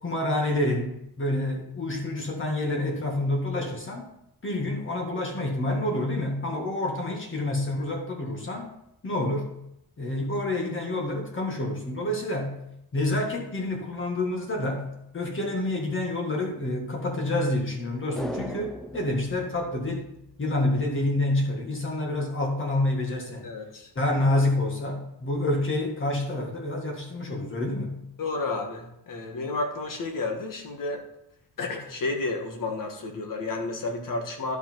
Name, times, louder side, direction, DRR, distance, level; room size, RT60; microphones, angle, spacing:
voice 1, 0.0-4.1 4.4-8.7 9.0-9.5 10.0-12.6 12.9-14.9 15.1-20.1 20.4-23.5 23.9-28.0, left 1 dB, 30° left, 0 dB, 1.9 m, -28 dB
sound 1, 18.1-20.6 20.9-21.0, equal, ahead, 0.5 m, -38 dB
voice 2, 23.4-23.9 28.2-31.0 31.6-34.6, left 3 dB, 55° left, 3 dB, 1.5 m, -31 dB
12.0 x 5.2 x 4.6 m, 0.80 s
wide cardioid pair, 175°, 40 cm